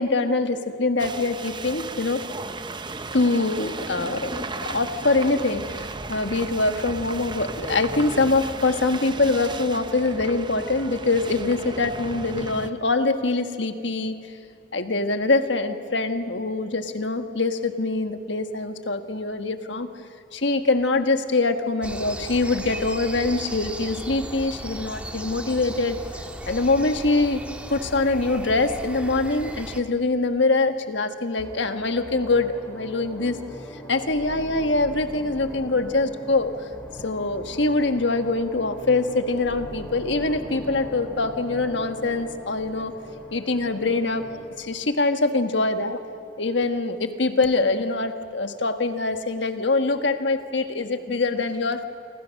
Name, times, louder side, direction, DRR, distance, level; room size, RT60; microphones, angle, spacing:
voice 1, 0.0-2.2 3.1-14.2 14.7-19.9 20.3-26.0 26.5-27.4 27.7-33.4 33.9-36.5 37.0-42.9 43.3-44.3 44.6-46.0 46.4-51.8, left 3 dB, 65° left, 8 dB, 1.4 m, -24 dB
sound 1, 1.0-12.7, right 3 dB, 25° right, 0.7 m, -35 dB
sound 2, 21.8-29.8, right 1 dB, 5° right, 1.4 m, -36 dB
sound 3, 31.4-44.7, equal, 10° left, 3.6 m, -40 dB
28.0 x 25.0 x 6.5 m, 2.5 s
head